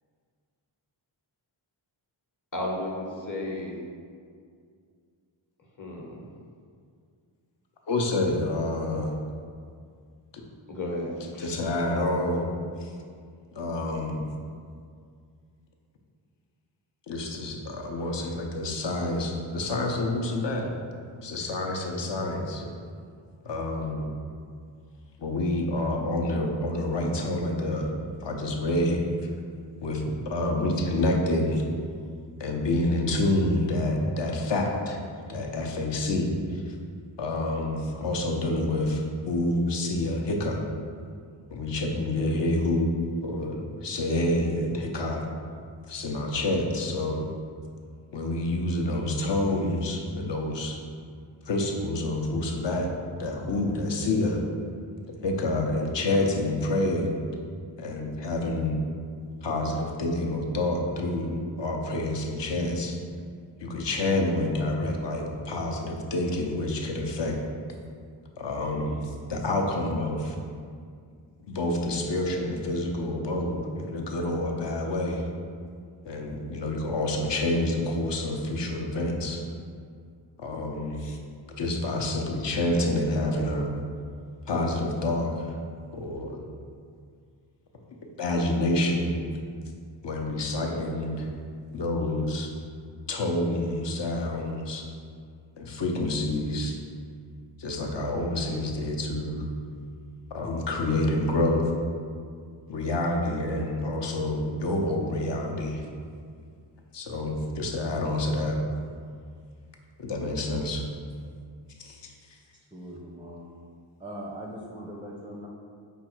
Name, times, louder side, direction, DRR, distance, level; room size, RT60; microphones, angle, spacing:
voice 1, 2.5-3.8 5.8-6.2 10.7-11.1 11.3-11.5, left 1 dB, 40° left, -2 dB, 0.9 m, -33 dB
voice 2, 7.9-9.2 11.4-12.5 12.8-12.9 13.5-14.3 17.1-20.7 21.2-22.7 23.4-24.1 25.2-28.0 28.2-29.0 29.8-31.7 32.4-35.0 35.3-36.8 37.2-40.6 41.5-45.2 45.9-47.3 48.1-50.8 51.4-52.9 53.2-54.4 55.2-57.2 57.8-58.8 59.4-63.0 63.6-67.4 68.4-70.4 71.4-75.2 76.1-79.4 80.4-81.2 81.6-83.7 84.5-85.6 85.9-86.4 88.2-89.2 90.0-91.3 91.7-92.5 93.1-94.9 95.6-96.8 97.6-99.4 100.3-101.7 102.7-105.8 106.9-108.6 110.0-110.8 111.8-112.1, left 1 dB, 60° left, 1 dB, 0.7 m, -28 dB
voice 3, 112.7-113.5 114.0-115.5, equal, 10° right, -3 dB, 0.4 m, -40 dB
5.0 x 2.3 x 4.4 m, 2.2 s
wide cardioid pair, 80°, 48 cm